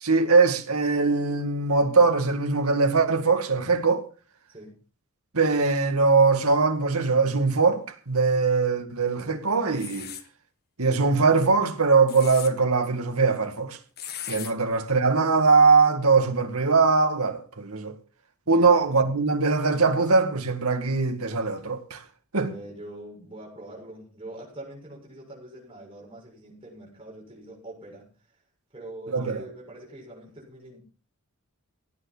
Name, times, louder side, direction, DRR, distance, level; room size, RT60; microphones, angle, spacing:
voice 1, 0.0-4.0 5.3-10.1 10.8-13.8 14.3-17.9 18.5-22.0 22.3-22.5 29.1-29.4, right 4 dB, 80° right, 2.0 m, -21 dB
sound 1, 9.7-10.3 11.9-12.5 14.0-14.5, left 10 dB, 45° left, 1.4 m, -37 dB
voice 2, 18.4-19.0 22.4-28.1 28.7-30.8, right 1 dB, 25° right, 7.3 m, -43 dB
16.5 x 9.7 x 5.6 m
head